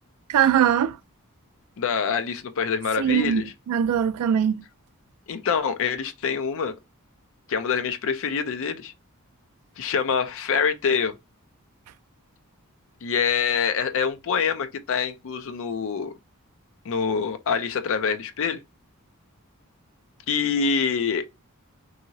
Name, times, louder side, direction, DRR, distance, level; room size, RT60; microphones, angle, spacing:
voice 1, 0.3-0.9 3.0-4.6, right 9 dB, 85° right, 0.3 m, -21 dB
voice 2, 1.8-3.5 5.3-6.7 7.5-8.9 9.8-11.1 13.0-16.1 16.9-18.6 20.3-21.2, left 6 dB, 60° left, 0.4 m, -25 dB
2.8 x 2.7 x 2.7 m
head